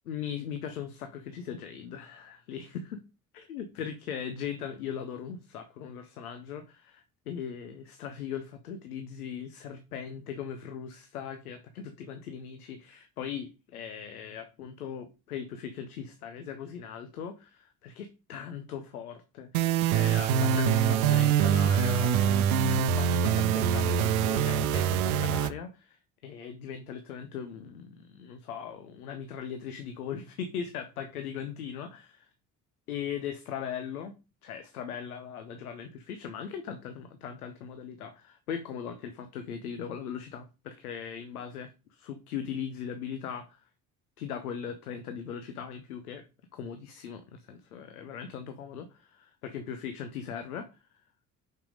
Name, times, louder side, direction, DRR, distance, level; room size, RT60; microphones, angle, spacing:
voice 1, 0.1-3.0 3.3-32.3 32.9-34.1 34.4-43.7 44.2-46.2 46.5-50.7, left 8 dB, 85° left, 9 dB, 0.8 m, -39 dB
sound 1, 19.5-25.5, right 8 dB, 80° right, 0.7 m, -24 dB
5.8 x 5.7 x 5.0 m, 0.31 s
hypercardioid pair, 50°, 43 cm